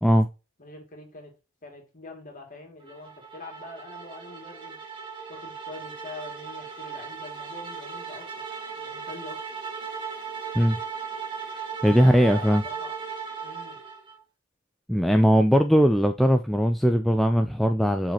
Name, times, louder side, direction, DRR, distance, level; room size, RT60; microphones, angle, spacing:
voice 1, 0.6-1.3 1.6-4.8 5.3-8.3 8.8-9.4 12.0-12.9 13.4-13.8, left 2 dB, 35° left, 2.4 m, -44 dB
sound 1, 2.9-14.2, right 6 dB, 20° right, 1.7 m, -37 dB
voice 2, 11.8-12.6 14.9-18.1, equal, ahead, 0.3 m, -20 dB
7.2 x 5.0 x 2.9 m
head